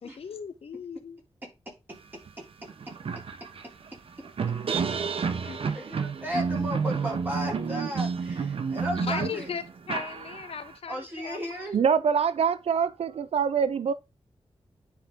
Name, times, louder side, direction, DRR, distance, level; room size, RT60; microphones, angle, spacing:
voice 1, 0.0-1.2 5.4-5.6 9.0-11.7, left 6 dB, 75° left, 0.9 m, -37 dB
voice 2, 1.4-1.7 2.4-2.9 3.6-3.7 5.4-9.5 10.9-11.8, equal, 20° right, 3.2 m, -35 dB
sound 1, 2.3-2.4 2.7-10.7, right 5 dB, 65° right, 0.9 m, -30 dB
voice 3, 11.7-13.9, right 7 dB, 85° right, 0.5 m, -24 dB
9.8 x 3.9 x 3.7 m
wide cardioid pair, 170°, 10 cm